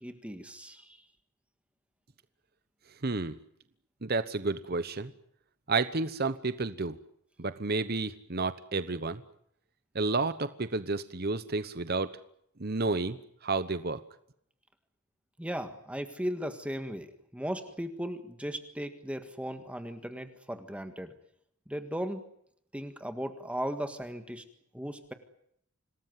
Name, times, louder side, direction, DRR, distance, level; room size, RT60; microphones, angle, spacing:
voice 1, 0.0-1.0 15.4-21.1 21.7-22.2 22.7-24.4 24.7-25.1, equal, 5° right, 8 dB, 1.6 m, -37 dB
voice 2, 3.0-3.4 4.0-5.1 5.7-7.0 7.4-9.2 9.9-12.1 12.6-13.2 13.4-14.0, right 3 dB, 45° right, 13 dB, 1.0 m, -31 dB
27.0 x 19.5 x 9.3 m, 0.73 s
head